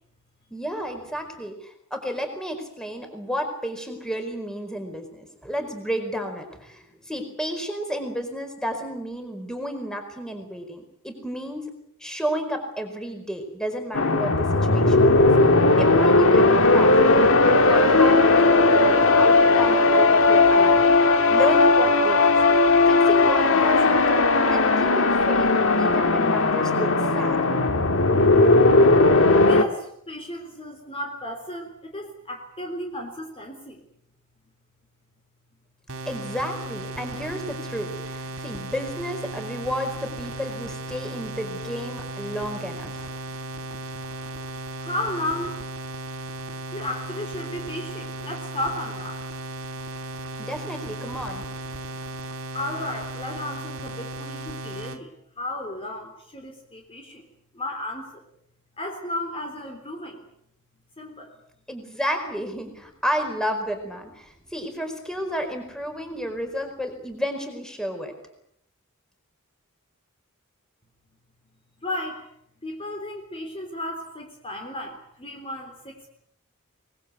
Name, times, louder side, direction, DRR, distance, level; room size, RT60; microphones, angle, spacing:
voice 1, 0.5-11.6 12.0-15.3 15.8-17.0 17.6-20.9 21.3-22.3 22.9-24.0 24.5-25.5 25.8-27.4 36.1-43.1 50.4-51.4 61.7-68.1, equal, 5° left, 5 dB, 4.6 m, -31 dB
sound 1, 13.9-29.6, left 3 dB, 65° left, 2.0 m, -17 dB
voice 2, 29.4-33.8 44.5-45.6 46.7-49.2 52.5-57.2 57.5-58.2 58.8-60.2 61.0-61.4 71.8-72.3 72.6-76.1, left 1 dB, 25° left, 3 dB, 3.6 m, -34 dB
sound 2, 35.9-55.0, right 2 dB, 65° right, 3.0 m, -36 dB
24.0 x 21.0 x 8.3 m, 0.72 s
head